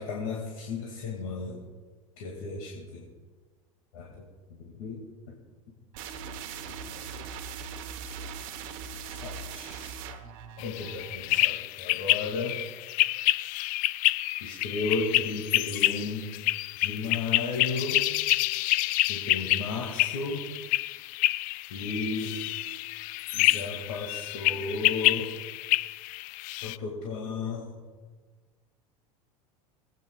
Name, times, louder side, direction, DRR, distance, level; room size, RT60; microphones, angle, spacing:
voice 1, 0.0-1.6 2.2-3.1 3.9-4.2 4.6-5.0 5.3-5.4 6.6-7.0 9.1-10.0 10.6-12.6 14.4-16.3 16.8-18.0 19.1-20.4 21.7-22.4 23.3-25.3 26.6-27.7, left 4 dB, 70° left, -1 dB, 2.2 m, -34 dB
sound 1, 5.9-11.6, right 6 dB, 60° right, 1.1 m, -40 dB
sound 2, 10.6-26.8, left 18 dB, 50° left, 0.4 m, -28 dB
25.5 x 9.1 x 2.3 m, 1.4 s
hypercardioid pair, 85°, 18 cm